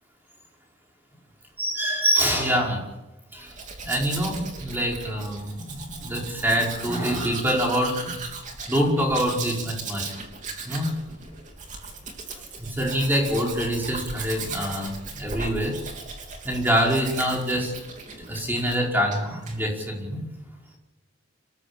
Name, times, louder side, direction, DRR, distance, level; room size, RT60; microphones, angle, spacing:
voice 1, 1.6-2.8 3.3-3.6 3.8-8.2 8.7-10.1 10.6-11.0 12.6-15.8 16.4-17.8 18.2-20.2, equal, 10° right, -1 dB, 4.9 m, -25 dB
Domestic sounds home sounds, 3.4-18.8 19.1-19.6, right 4 dB, 35° right, 3.2 m, -37 dB
27.0 x 14.0 x 8.8 m, 1.0 s
head